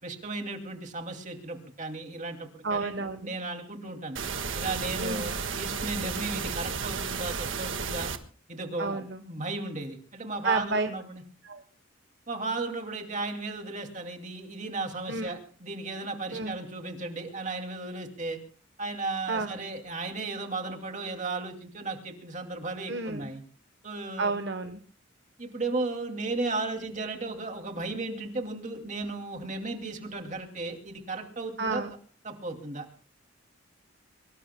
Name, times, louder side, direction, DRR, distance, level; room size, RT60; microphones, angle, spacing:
voice 1, 0.0-4.2 4.6-8.1 8.5-11.2 12.3-18.4 18.8-23.4 23.8-24.3 25.4-31.8 32.2-32.9, right 3 dB, 35° right, 4 dB, 2.5 m, -35 dB
voice 2, 2.6-3.3 5.0-5.3 8.8-9.2 10.4-10.9 11.4-11.6 15.1-15.3 16.3-16.5 19.3-19.6 22.9-23.3 24.2-24.8 31.6-31.9, right 3 dB, 55° right, 7 dB, 1.0 m, -31 dB
sound 1, 4.1-8.2, right 5 dB, 70° right, 1.6 m, -33 dB
24.0 x 22.0 x 2.2 m, 0.41 s
head